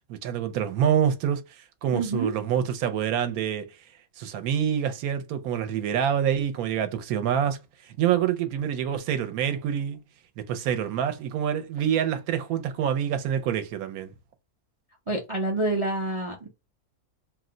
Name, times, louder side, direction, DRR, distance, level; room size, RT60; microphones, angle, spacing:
voice 1, 0.1-1.4 1.8-3.7 4.2-7.6 8.0-10.0 10.4-14.1, right 9 dB, 80° right, 1.0 m, -26 dB
voice 2, 1.9-2.3 15.1-16.5, right 2 dB, 45° right, 0.4 m, -27 dB
2.6 x 2.1 x 3.7 m
omnidirectional pair, 1.5 m